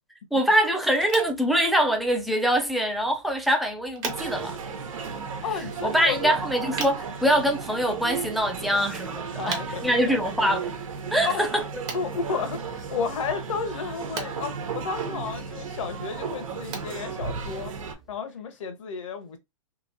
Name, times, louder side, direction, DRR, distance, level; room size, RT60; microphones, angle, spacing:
voice 1, 0.3-4.6 5.8-10.7 11.1-11.6, right 1 dB, ahead, 0.4 m, -24 dB
sound 1, 0.9-18.1, right 5 dB, 25° right, 0.8 m, -43 dB
sound 2, 4.0-17.9, right 5 dB, 85° right, 1.0 m, -35 dB
voice 2, 5.4-6.4 9.4-10.6 11.2-11.5 11.9-17.7 18.1-19.4, left 5 dB, 70° left, 0.9 m, -32 dB
3.0 x 2.9 x 2.7 m
hypercardioid pair, 155°, 17 cm